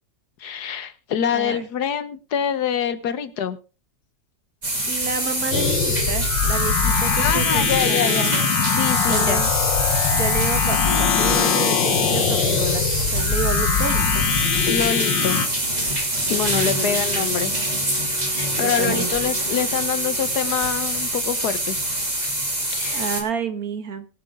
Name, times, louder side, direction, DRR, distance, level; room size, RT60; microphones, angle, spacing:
voice 1, 0.4-3.6 6.9-8.3 8.7-9.4 14.7-15.4 16.3-17.5 18.3-21.9 22.7-23.0, left 8 dB, 65° left, 13 dB, 1.4 m, -25 dB
voice 2, 1.3-1.7 4.9-8.4 9.1-9.5 10.1-14.3 16.6-17.3 18.6-19.4 22.9-24.1, right 6 dB, 55° right, 10 dB, 1.6 m, -30 dB
sound 1, 4.6-23.2, right 1 dB, 20° right, 2.6 m, -25 dB
sound 2, 5.5-15.5, left 7 dB, 85° left, 1.7 m, -22 dB
Wind instrument woodwind instrument, 16.3-20.7, left 2 dB, 85° right, 8.2 m, -41 dB
21.5 x 7.6 x 3.5 m, 0.33 s
omnidirectional pair, 1.9 m